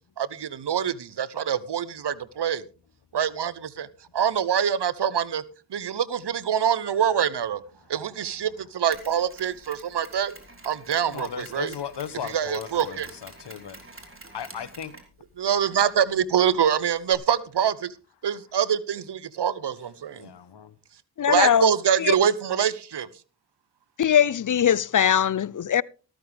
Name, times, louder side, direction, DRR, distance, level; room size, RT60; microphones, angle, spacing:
voice 1, 0.2-2.6 3.1-3.9 4.1-5.4 5.7-7.6 7.9-10.3 10.6-11.7 12.3-13.1 15.4-17.9 18.2-20.3 21.3-23.1, right 8 dB, 80° right, 0.9 m, -25 dB
Mechanisms, 8.9-17.2, right 2 dB, 30° right, 3.6 m, -48 dB
voice 2, 11.1-15.0 20.1-20.7, left 8 dB, 85° left, 1.1 m, -37 dB
voice 3, 21.2-21.7 22.0-22.1 24.0-25.8, left 9 dB, 50° left, 0.5 m, -21 dB
14.0 x 13.0 x 3.4 m
cardioid pair, 40°, 41 cm